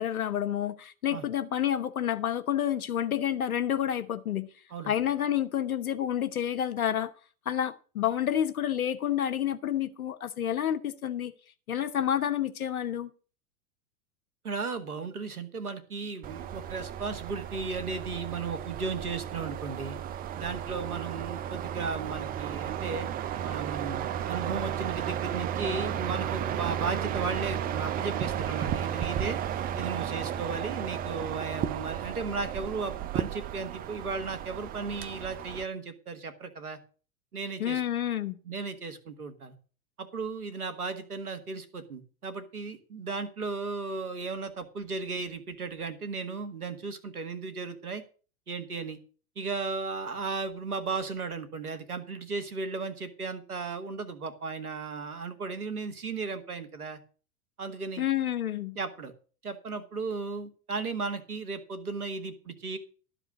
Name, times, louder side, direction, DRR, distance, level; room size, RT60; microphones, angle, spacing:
voice 1, 0.0-4.5 4.9-7.1 7.5-11.3 11.7-13.1 37.6-38.4 58.0-58.8, left 10 dB, 75° left, 1.2 m, -29 dB
voice 2, 14.4-20.0 20.4-23.1 23.4-29.4 29.8-36.8 37.3-37.8 38.5-39.5 40.0-48.0 48.5-49.0 49.4-57.0 57.6-58.0 58.8-59.1 59.4-62.8, right 4 dB, 80° right, 2.0 m, -35 dB
sound 1, 16.2-35.6, right 10 dB, 20° right, 0.5 m, -34 dB
13.0 x 4.9 x 8.0 m
figure-of-eight pair, 90°, 44 cm